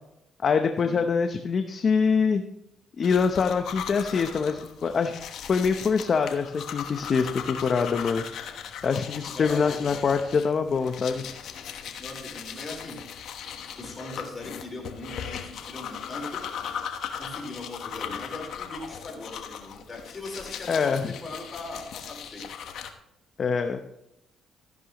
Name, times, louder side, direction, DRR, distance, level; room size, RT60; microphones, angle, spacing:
voice 1, 0.4-2.4 3.0-5.1 5.5-8.2 8.8-11.2 20.7-21.1 23.4-23.8, left 5 dB, 50° left, 6 dB, 0.8 m, -24 dB
sound 1, 3.0-22.9, left 8 dB, 75° left, 1.2 m, -38 dB
voice 2, 9.3-10.0 12.0-13.0 13.8-16.4 17.2-22.5, left 2 dB, 30° left, 0 dB, 4.3 m, -39 dB
14.0 x 11.0 x 3.0 m, 0.84 s
cardioid pair, 90°, 0 cm